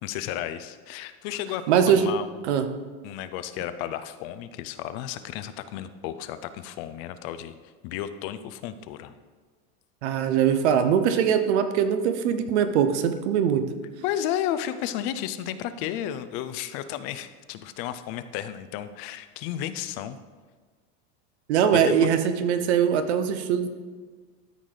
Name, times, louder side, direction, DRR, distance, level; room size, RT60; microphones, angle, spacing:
voice 1, 0.0-2.5 3.0-7.5 7.8-9.1 14.0-20.2 21.7-22.1, left 11 dB, 50° left, 12 dB, 0.5 m, -33 dB
voice 2, 1.7-2.1 2.5-2.7 10.0-13.7 21.5-23.7, right 8 dB, 80° right, 9 dB, 1.0 m, -22 dB
13.0 x 4.8 x 3.9 m, 1.4 s
supercardioid pair, 150°, 33 cm